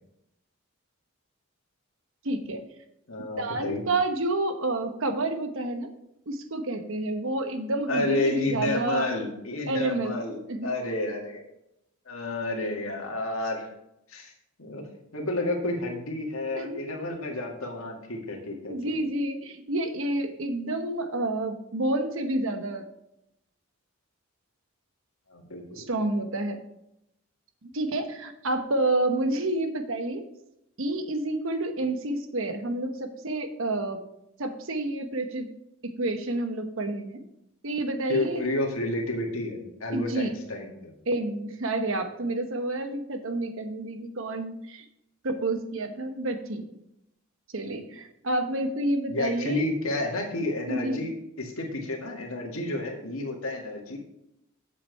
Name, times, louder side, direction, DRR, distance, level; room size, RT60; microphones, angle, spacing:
voice 1, 2.2-2.6 3.4-5.9 6.3-9.1 9.7-10.2 10.5-10.7 16.6-17.0 18.7-22.8 25.8-26.6 27.6-30.2 30.8-34.0 34.4-35.5 35.8-37.2 37.6-38.4 39.9-40.3 41.1-44.8 45.2-46.7 47.5-49.6 50.7-51.0, right 2 dB, 70° right, 8 dB, 1.0 m, -29 dB
voice 2, 3.1-3.8 7.9-11.4 12.1-13.7 14.1-14.3 14.6-14.8 15.1-18.9 25.3-25.9 38.1-40.9 49.1-54.0, left 2 dB, 85° left, 1 dB, 2.0 m, -30 dB
7.4 x 7.4 x 4.6 m, 0.83 s
head